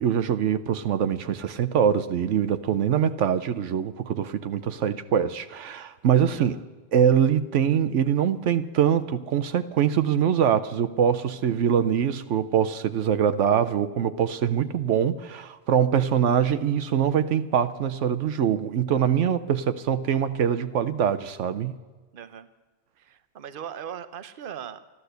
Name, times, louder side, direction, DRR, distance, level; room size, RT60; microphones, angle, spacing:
voice 1, 0.0-6.6 6.9-21.7, right 8 dB, 80° right, 11 dB, 1.0 m, -23 dB
voice 2, 22.1-22.5 23.0-24.8, right 8 dB, 50° right, 12 dB, 1.0 m, -39 dB
13.5 x 12.5 x 8.0 m, 1.3 s
omnidirectional pair, 1.2 m